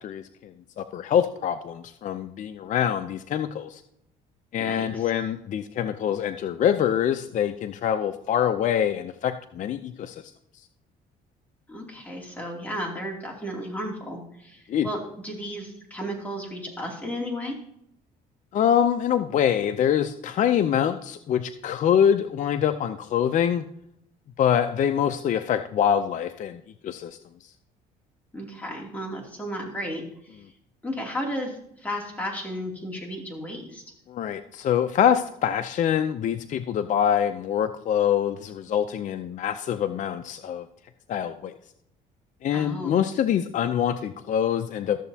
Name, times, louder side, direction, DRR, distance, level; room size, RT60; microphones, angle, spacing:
voice 1, 0.0-3.8 4.5-10.2 14.7-14.9 18.5-23.6 24.4-27.2 34.1-40.7 41.1-41.5 42.4-45.0, left 9 dB, 50° left, 9 dB, 0.5 m, -25 dB
voice 2, 4.6-5.1 11.7-17.6 28.3-30.0 30.3-30.4 30.8-33.8 42.5-43.1, equal, 10° left, -2 dB, 2.7 m, -34 dB
13.5 x 6.9 x 2.8 m, 0.74 s
cardioid pair, 110°, 17 cm